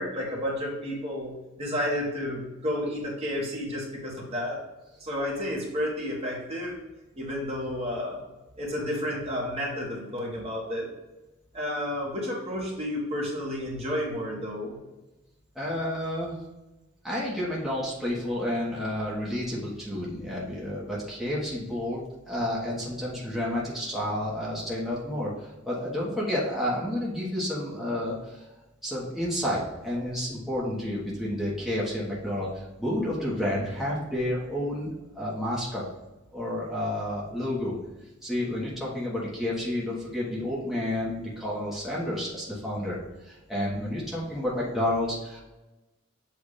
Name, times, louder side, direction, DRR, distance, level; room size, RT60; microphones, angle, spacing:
voice 1, 0.0-4.6 5.0-6.8 7.1-8.2 8.6-10.9 11.5-14.8, left 1 dB, 30° right, -3 dB, 1.4 m, -31 dB
voice 2, 15.5-16.4 17.0-28.4 28.8-35.8 36.3-37.7 38.2-43.0 43.2-45.4, left 1 dB, ahead, -7 dB, 1.3 m, -30 dB
7.5 x 2.7 x 4.9 m, 1.1 s
head